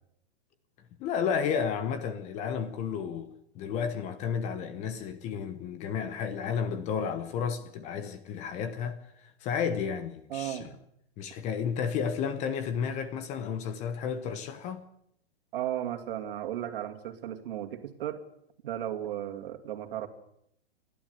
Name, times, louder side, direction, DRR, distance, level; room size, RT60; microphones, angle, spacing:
voice 1, 1.0-10.8 11.2-14.8, left 7 dB, 20° left, 0.9 m, -32 dB
voice 2, 10.3-10.7 15.5-18.2 18.6-20.1, right 11 dB, 55° right, 2.4 m, -35 dB
28.5 x 12.0 x 8.1 m
hypercardioid pair, 155°, 33 cm